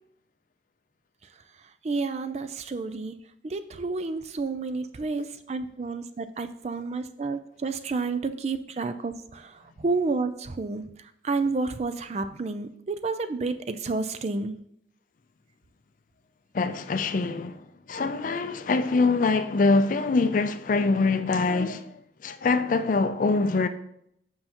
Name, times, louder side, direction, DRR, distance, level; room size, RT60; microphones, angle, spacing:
voice 1, 1.8-3.1 3.4-14.5, right 3 dB, 35° right, 0.4 m, -30 dB
voice 2, 16.5-17.6 17.9-23.7, left 3 dB, 45° left, 0.4 m, -24 dB
7.6 x 5.5 x 2.9 m
head